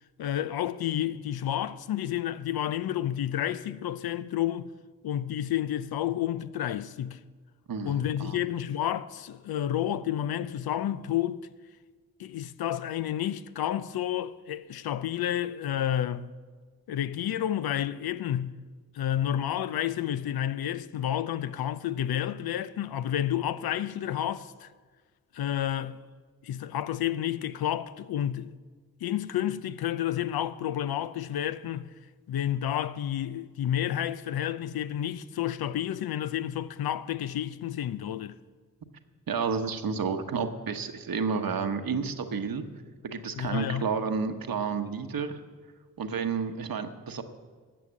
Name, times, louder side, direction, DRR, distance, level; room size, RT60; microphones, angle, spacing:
voice 1, 0.2-4.7 5.0-7.2 7.8-11.5 12.2-16.3 16.9-18.6 18.9-24.7 25.3-26.0 26.4-28.5 29.0-31.9 32.3-38.4 43.3-43.9, left 11 dB, 90° left, 0.5 m, -30 dB
voice 2, 7.7-8.4 39.3-42.7 43.0-45.4 46.0-47.2, right 5 dB, 70° right, 1.1 m, -31 dB
13.5 x 8.4 x 7.4 m
cardioid pair, 45°, 36 cm